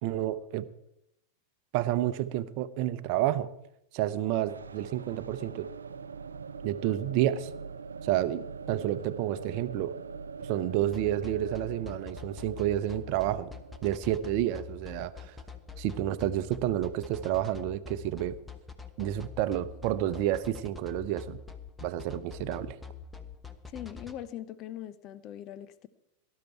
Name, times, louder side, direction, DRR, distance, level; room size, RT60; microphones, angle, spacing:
voice 1, 0.0-0.6 1.7-3.5 3.9-5.7 6.6-7.5 8.0-10.0 10.5-13.5 13.8-15.3 15.8-18.4 19.0-21.4 21.8-22.8, right 13 dB, 45° right, 13 dB, 0.8 m, -30 dB
sound 1, 4.4-16.2, right 5 dB, 70° right, 0.6 m, -43 dB
sound 2, 10.9-24.1, left 7 dB, 5° left, 1.2 m, -44 dB
voice 2, 23.7-25.9, left 11 dB, 35° left, 15 dB, 0.9 m, -41 dB
18.5 x 12.0 x 4.6 m, 0.80 s
figure-of-eight pair, 90°, 0 cm